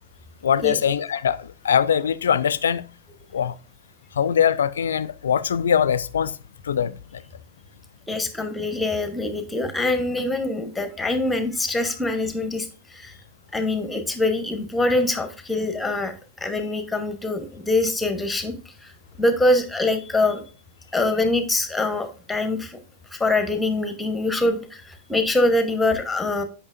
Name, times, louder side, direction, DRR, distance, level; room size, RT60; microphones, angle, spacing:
voice 1, 0.4-2.8 3.3-3.6 4.1-6.4 6.6-7.2, left 8 dB, 65° left, 0.3 m, -22 dB
voice 2, 8.1-13.1 13.5-18.5 18.8-18.9 19.2-20.4 20.9-22.8 23.1-26.4, left 2 dB, 10° left, 0.9 m, -24 dB
8.5 x 5.5 x 2.5 m
figure-of-eight pair, 90°, 0 cm